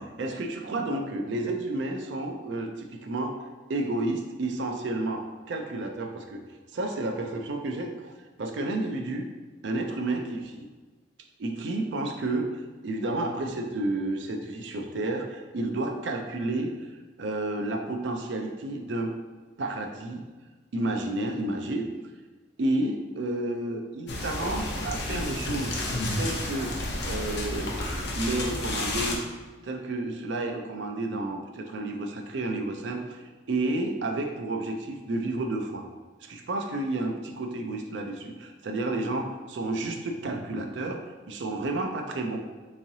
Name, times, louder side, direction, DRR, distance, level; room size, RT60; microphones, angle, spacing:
voice 1, 0.0-3.4 3.7-6.4 6.7-8.1 8.4-9.3 9.6-10.4 11.4-19.1 19.6-20.2 20.7-21.8 22.6-25.7 26.2-26.8 27.0-29.2 29.6-35.9 36.2-42.4, right 2 dB, 70° right, 3 dB, 0.4 m, -31 dB
sound 1, 24.1-29.2, left 1 dB, 60° left, 0.6 m, -31 dB
3.7 x 3.1 x 2.7 m, 1.3 s
head